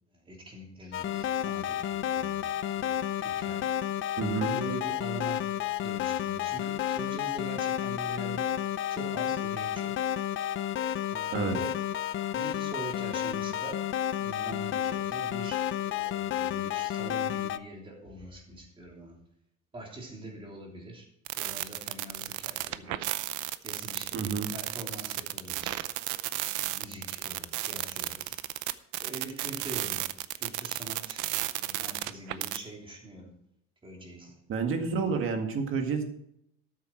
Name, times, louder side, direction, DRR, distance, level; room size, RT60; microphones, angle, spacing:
voice 1, 0.1-3.7 4.5-5.6 5.8-8.6 8.9-10.1 11.1-11.8 12.3-13.9 14.2-19.2 19.7-21.1 21.3-23.1 23.6-26.1 26.7-28.4 29.0-30.1 30.4-33.3 33.8-34.4, right 2 dB, 15° right, 0 dB, 3.2 m, -43 dB
sound 1, 0.9-17.6, left 11 dB, 40° left, 0.6 m, -31 dB
voice 2, 4.2-4.5 11.3-11.5 24.1-24.5 34.5-36.0, right 5 dB, 45° right, 5 dB, 1.9 m, -29 dB
sound 2, 21.3-32.6, right 16 dB, 70° right, 0.7 m, -33 dB
13.0 x 8.5 x 4.5 m, 0.75 s
cardioid pair, 150°, 31 cm